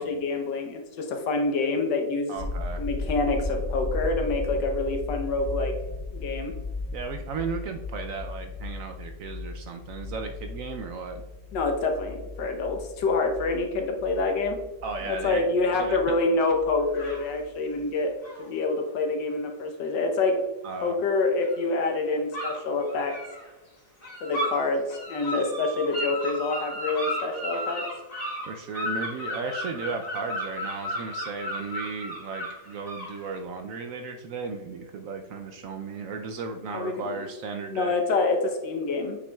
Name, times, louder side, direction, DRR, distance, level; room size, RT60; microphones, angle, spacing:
voice 1, 0.0-2.5 2.8-5.7 6.1-6.5 11.5-14.6 15.0-18.1 18.4-20.4 20.8-23.2 24.2-27.8 36.7-37.1 37.7-39.2, left 3 dB, 90° left, 3 dB, 1.6 m, -27 dB
voice 2, 2.3-2.8 6.9-11.2 14.8-15.4 15.7-16.1 20.6-21.0 28.5-38.0, right 4 dB, 70° right, 5 dB, 0.8 m, -35 dB
sound 1, 2.4-16.2 16.5-17.4, left 3 dB, 50° left, 1.0 m, -36 dB
sound 2, 16.9-17.3 18.2-18.5 21.4-21.6 22.3-23.4 24.0-24.6 24.9-33.4, equal, 30° left, 2.4 m, -34 dB
8.1 x 5.9 x 2.3 m, 1.1 s
omnidirectional pair, 1.9 m